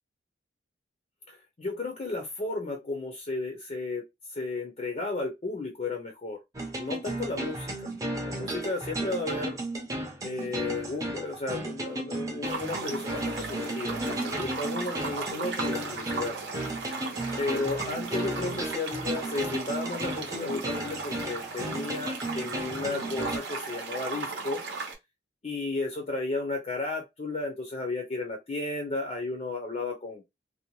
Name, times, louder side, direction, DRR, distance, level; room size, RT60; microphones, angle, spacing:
voice 1, 1.3-6.4 6.8-7.9 8.2-9.6 10.2-16.4 17.4-24.6 25.4-30.3, left 3 dB, 35° left, 0.5 m, -33 dB
sound 1, 6.5-23.4, right 1 dB, 20° right, 0.6 m, -34 dB
sound 2, 12.4-24.9, right 4 dB, 70° right, 0.7 m, -37 dB
2.6 x 2.1 x 2.9 m
head